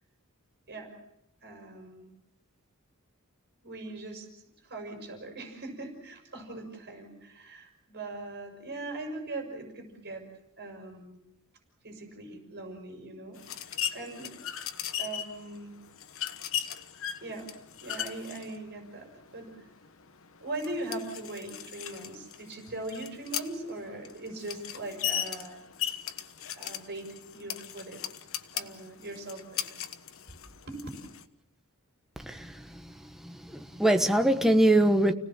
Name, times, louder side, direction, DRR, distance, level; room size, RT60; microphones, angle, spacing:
voice 1, 1.4-2.1 3.6-4.3 4.6-10.2 10.6-11.2 11.8-14.3 15.0-15.7 17.2-17.5 17.8-19.1 19.3-19.7 20.4-25.6 26.5-28.0 28.5-29.7 30.7-30.9, right 2 dB, 50° right, 6.0 m, -40 dB
sound 1, 13.4-31.2, left 10 dB, 65° left, 1.3 m, -38 dB
voice 2, 32.3-32.8 33.2-35.1, right 1 dB, ahead, 1.2 m, -23 dB
29.5 x 18.5 x 7.4 m
head